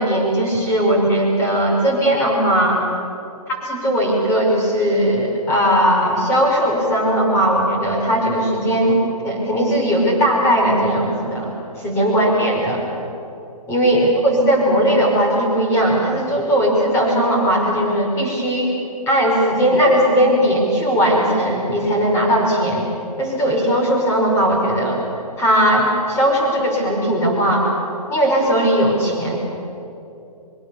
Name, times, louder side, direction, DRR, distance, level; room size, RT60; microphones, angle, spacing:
voice 1, 0.0-2.8 3.6-11.5 11.8-12.9 13.7-18.7 19.1-22.8 23.2-25.0 25.4-27.7 28.1-29.4, equal, 15° left, -1 dB, 5.3 m, -18 dB
25.0 x 23.0 x 7.1 m, 2.8 s
hypercardioid pair, 155°, 20 cm